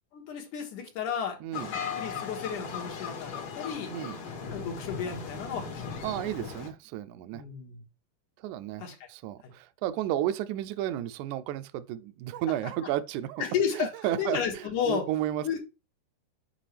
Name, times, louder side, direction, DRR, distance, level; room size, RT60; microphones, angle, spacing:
voice 1, 0.1-1.4 1.7-3.9 4.5-6.0 7.3-7.8 8.8-8.9 13.4-13.9 14.2-15.1 15.4-15.6, left 7 dB, 70° left, 2.9 m, -32 dB
sound 1, 1.5-6.7, left 6 dB, 55° left, 2.4 m, -37 dB
voice 2, 6.0-7.4 8.4-13.4 13.7-15.6, right 12 dB, 80° right, 1.9 m, -33 dB
7.6 x 5.4 x 3.3 m
omnidirectional pair, 3.7 m